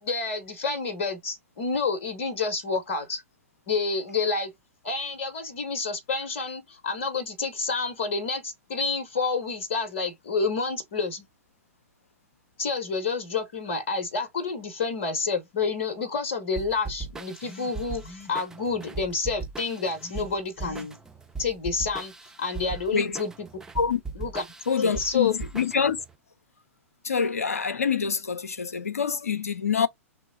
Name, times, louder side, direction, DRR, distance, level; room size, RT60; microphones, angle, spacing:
voice 1, 0.0-3.2 3.7-4.5 4.8-11.2 12.6-21.0 21.4-22.1 22.4-23.3 24.2-24.4 24.8-25.3, left 4 dB, 55° left, 1.0 m, -29 dB
sound 1, 16.6-26.1, right 4 dB, 5° right, 0.4 m, -39 dB
voice 2, 24.7-26.0 27.0-29.9, left 6 dB, 80° left, 0.6 m, -26 dB
3.1 x 3.0 x 3.9 m
figure-of-eight pair, 105°, 8 cm